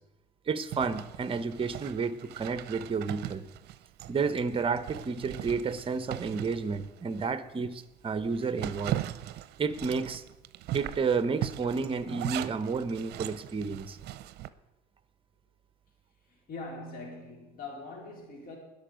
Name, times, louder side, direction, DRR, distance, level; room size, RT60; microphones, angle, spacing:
voice 1, 0.5-3.4 4.1-9.0 9.6-10.2 10.7-14.0, right 5 dB, 30° right, 14 dB, 0.9 m, -31 dB
Zipper (clothing), 0.7-7.3 7.7-7.8 8.2-14.5, right 13 dB, 75° right, 0.6 m, -39 dB
voice 2, 16.3-18.6, left 3 dB, 60° left, 0 dB, 4.4 m, -42 dB
20.5 x 7.0 x 5.1 m, 0.96 s
cardioid pair, 110°, 17 cm